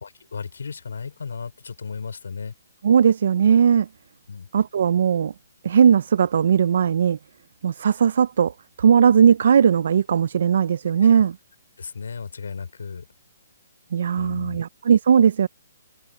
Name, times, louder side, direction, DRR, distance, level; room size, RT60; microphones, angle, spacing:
voice 1, 0.0-2.5 4.3-4.5 11.8-13.1 14.2-14.6, left 5 dB, 80° left, 3.4 m, -34 dB
voice 2, 2.8-3.9 4.5-5.3 5.6-7.2 7.6-8.5 8.8-11.4 13.9-15.5, right 7 dB, 45° right, 0.3 m, -18 dB
hypercardioid pair, 180°, 0 cm